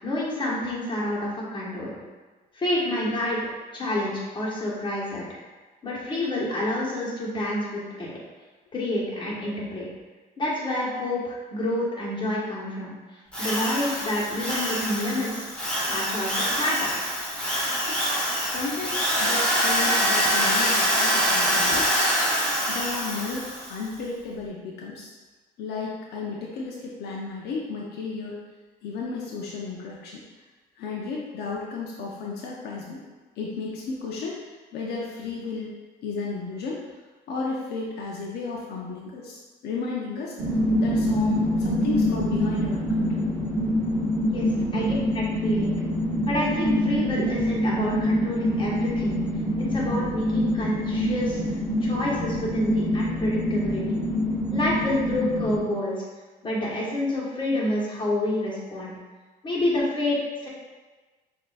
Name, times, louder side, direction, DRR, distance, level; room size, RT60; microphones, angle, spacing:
voice 1, 0.0-1.9 2.5-3.4 3.7-5.2 5.8-8.1 8.7-9.9 10.4-12.9 13.4-15.5 15.9-16.8 44.3-45.8 46.3-49.2 49.6-51.4 51.8-53.9 54.5-56.0 56.4-58.9 59.4-60.2 60.4-60.5, left 1 dB, 30° left, -6 dB, 1.5 m, -28 dB
Drill, 13.3-23.7, equal, 5° left, 1.2 m, -25 dB
voice 2, 18.4-21.9 22.7-25.1 25.6-28.4 28.8-30.2 30.8-33.0 33.4-34.4 34.7-35.8 36.0-36.8 37.3-40.4 40.8-43.2 44.5-44.8, left 4 dB, 75° left, -3 dB, 0.7 m, -33 dB
sound 1, 40.4-55.6, equal, 20° right, 1.1 m, -25 dB
6.7 x 2.8 x 2.5 m, 1.3 s
cardioid pair, 110°, 17 cm